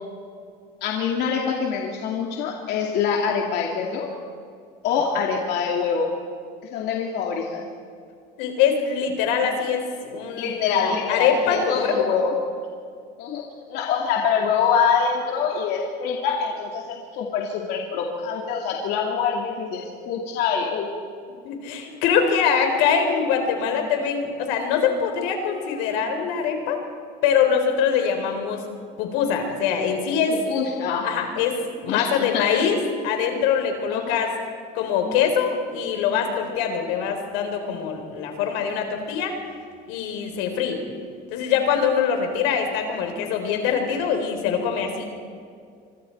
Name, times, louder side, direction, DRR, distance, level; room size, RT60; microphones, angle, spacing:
voice 1, 0.8-4.1 4.8-6.1 6.7-7.7 10.4-12.4 13.2-13.4 13.7-20.9 30.3-31.1 31.9-32.6 33.9-34.2, left 6 dB, 60° left, 0 dB, 2.5 m, -25 dB
voice 2, 8.4-12.0 21.4-26.8 27.2-28.6 29.0-30.4 31.0-34.3 34.7-39.3 39.9-40.8 41.3-45.0, left 7 dB, 90° left, 5 dB, 4.0 m, -23 dB
26.0 x 24.5 x 4.6 m, 2.2 s
cardioid pair, 150°, 19 cm